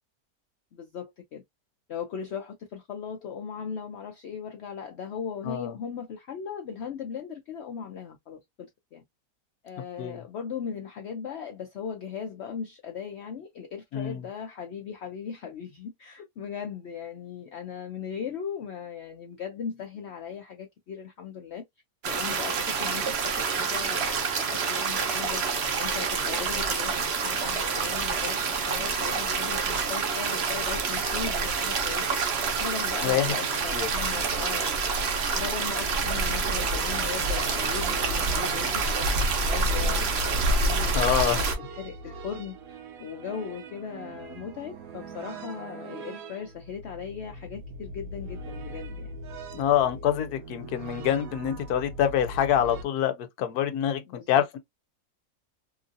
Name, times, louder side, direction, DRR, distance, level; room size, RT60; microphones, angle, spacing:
voice 1, 0.7-1.4 1.9-9.0 9.6-21.6 22.0-25.4 25.8-28.4 28.6-32.2 32.6-34.8 35.3-49.1 54.1-54.4, left 7 dB, 65° left, 0.7 m, -38 dB
voice 2, 13.9-14.2 33.0-33.3 33.7-33.9 40.9-41.5 49.5-54.6, left 10 dB, 85° left, 1.1 m, -26 dB
sound 1, 22.0-41.5, right 4 dB, 55° right, 0.8 m, -27 dB
sound 2, 34.7-52.8, right 2 dB, 75° right, 1.1 m, -42 dB
3.0 x 2.5 x 2.5 m
omnidirectional pair, 1.6 m